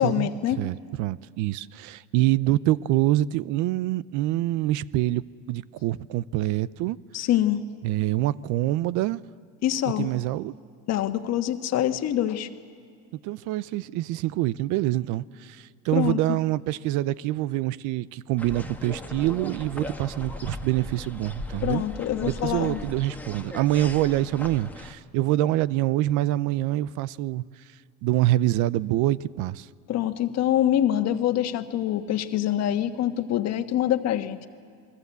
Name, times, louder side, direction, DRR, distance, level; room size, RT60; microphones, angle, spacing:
voice 1, 0.0-0.6 7.1-7.6 9.6-10.1 10.9-12.5 15.9-16.4 21.6-22.8 29.9-34.5, left 11 dB, 55° left, 1.4 m, -25 dB
voice 2, 0.6-5.2 5.5-7.0 7.8-9.2 10.0-10.5 13.2-21.8 22.2-27.4 28.0-29.7, right 15 dB, 75° right, 0.6 m, -25 dB
sound 1, 18.4-24.9, left 2 dB, 5° left, 1.5 m, -38 dB
28.0 x 21.5 x 8.2 m
supercardioid pair, 100°, 31 cm